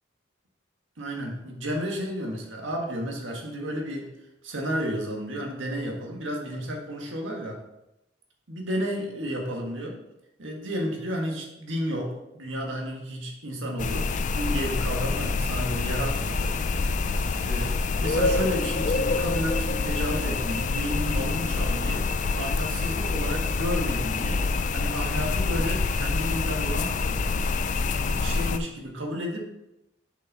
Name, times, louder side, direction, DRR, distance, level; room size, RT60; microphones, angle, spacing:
voice 1, 1.0-4.1 4.4-7.6 8.5-10.0 10.4-16.6 17.4-24.5 24.7-27.0 28.0-29.4, equal, 80° right, 0 dB, 1.5 m, -32 dB
sound 1, 13.8-28.6, left 4 dB, 40° left, 0.3 m, -26 dB
7.0 x 5.6 x 4.1 m, 0.91 s
head